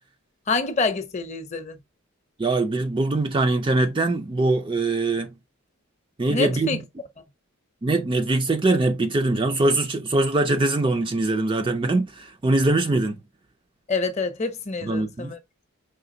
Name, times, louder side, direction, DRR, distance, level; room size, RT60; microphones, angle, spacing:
voice 1, 0.5-1.8 6.3-6.8 13.9-15.4, left 4 dB, 30° left, 0.7 m, -26 dB
voice 2, 2.4-5.3 6.2-6.8 7.8-13.2 14.8-15.4, right 2 dB, 25° right, 0.4 m, -22 dB
4.9 x 3.6 x 2.6 m
head